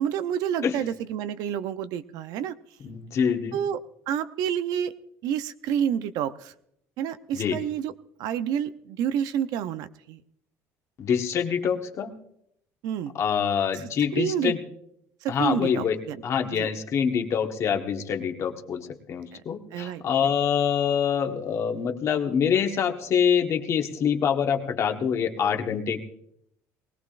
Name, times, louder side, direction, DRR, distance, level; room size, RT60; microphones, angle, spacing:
voice 1, 0.0-2.5 3.5-3.8 4.1-4.9 5.2-6.5 7.0-7.9 8.2-10.2 12.8-13.1 13.8-14.6 15.2-16.2 16.6-16.7 19.3-19.4 19.7-20.3, right 9 dB, 70° right, 12 dB, 0.7 m, -29 dB
voice 2, 2.8-3.6 7.3-7.6 11.0-12.1 13.1-14.6 15.3-26.0, left 7 dB, 45° left, 4 dB, 1.3 m, -25 dB
20.0 x 17.5 x 2.5 m, 0.72 s
cardioid pair, 115°, 7 cm